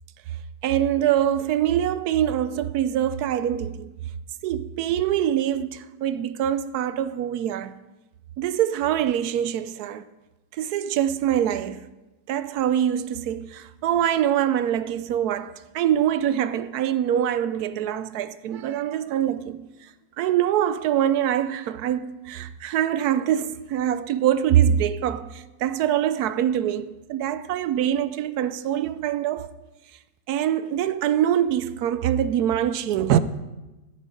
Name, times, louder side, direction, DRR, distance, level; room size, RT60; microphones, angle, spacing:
voice 1, 0.6-3.9 4.4-7.7 8.4-10.0 10.5-11.8 12.3-19.6 20.2-29.5 30.3-33.2, right 10 dB, 70° right, 1.0 m, -24 dB
14.0 x 8.6 x 5.1 m
omnidirectional pair, 1.9 m